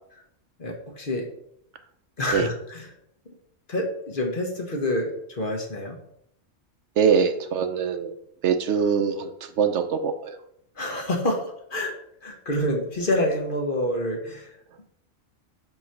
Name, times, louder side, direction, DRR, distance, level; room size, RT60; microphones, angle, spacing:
voice 1, 0.6-1.3 2.2-2.9 3.7-6.0 10.8-11.9 12.2-14.5, left 1 dB, 45° left, 2 dB, 1.2 m, -27 dB
voice 2, 7.0-8.1 8.4-10.4, right 6 dB, 70° right, 8 dB, 0.9 m, -23 dB
7.7 x 3.1 x 5.7 m, 0.74 s
omnidirectional pair, 1.3 m